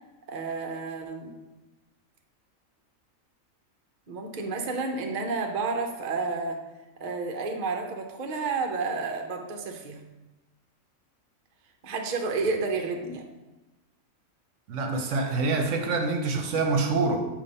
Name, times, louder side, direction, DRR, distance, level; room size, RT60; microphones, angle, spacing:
voice 1, 0.3-1.3 4.1-6.6 7.0-10.0 11.8-13.2, right 4 dB, 45° right, 3 dB, 0.7 m, -30 dB
voice 2, 14.7-17.2, right 3 dB, 65° right, 4 dB, 1.0 m, -26 dB
6.9 x 2.7 x 5.3 m, 1.1 s
omnidirectional pair, 1.4 m